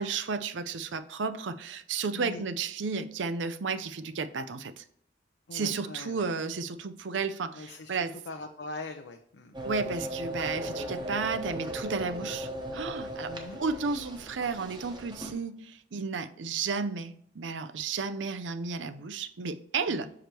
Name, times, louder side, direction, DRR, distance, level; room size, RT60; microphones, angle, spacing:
voice 1, 0.0-4.8 5.5-8.2 9.6-13.3 13.6-20.1, right 4 dB, 85° right, 0.5 m, -33 dB
voice 2, 5.5-6.2 7.5-9.6 13.3-13.6 20.0-20.1, left 3 dB, 70° left, 0.5 m, -42 dB
sound 1, 9.5-15.3, equal, 25° right, 0.9 m, -37 dB
6.6 x 4.9 x 3.0 m
head